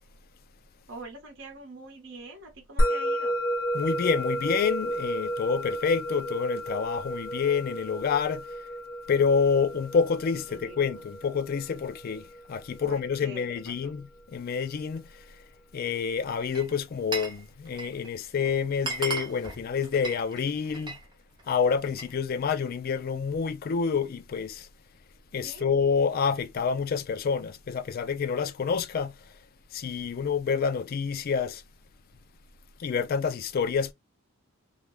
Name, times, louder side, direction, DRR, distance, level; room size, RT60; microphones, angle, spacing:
voice 1, 0.9-3.4 10.5-11.3 12.8-14.0 25.4-25.7, right 2 dB, 60° right, 1.0 m, -45 dB
Musical instrument, 2.8-13.4, equal, 65° left, 0.8 m, -32 dB
voice 2, 3.7-8.5 9.1-14.1 14.3-15.1 15.7-21.0 21.5-24.7 25.3-29.2 29.7-31.6 32.8-33.9, left 6 dB, 45° left, 0.3 m, -28 dB
Glass, 16.4-17.4 17.7-18.1 18.4-18.5 18.8-21.0 21.4-22.1, right 3 dB, 20° right, 0.6 m, -36 dB
2.4 x 2.1 x 3.0 m
head